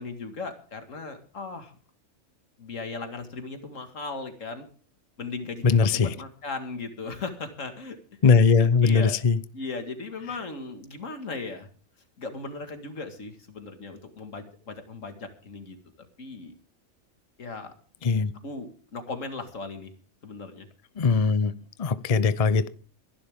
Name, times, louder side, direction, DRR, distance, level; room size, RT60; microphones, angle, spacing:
voice 1, 0.0-1.8 2.6-4.7 5.2-8.3 8.6-9.2 9.5-11.7 12.2-16.5 17.4-17.7 18.4-19.9 20.2-20.7, left 3 dB, 80° left, 2.2 m, -37 dB
voice 2, 5.6-6.1 8.2-9.4 18.0-18.3 21.0-21.5 21.8-22.7, left 5 dB, 35° left, 0.6 m, -20 dB
22.0 x 11.5 x 3.6 m
omnidirectional pair, 1.3 m